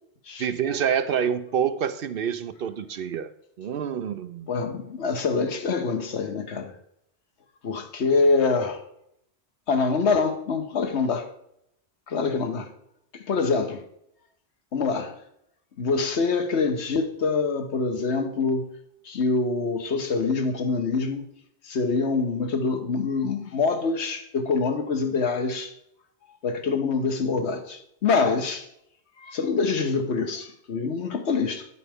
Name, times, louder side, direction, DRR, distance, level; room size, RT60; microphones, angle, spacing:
voice 1, 0.4-3.3 3.6-4.5, right 8 dB, 65° right, 0.8 m, -27 dB
voice 2, 4.5-6.7 7.6-8.8 9.7-11.3 12.1-12.7 13.1-13.8 14.7-15.1 15.8-18.7 19.0-21.3 21.6-25.7 26.4-28.7 29.2-31.7, left 4 dB, 85° left, 1.3 m, -25 dB
10.0 x 8.4 x 3.5 m
omnidirectional pair, 1.1 m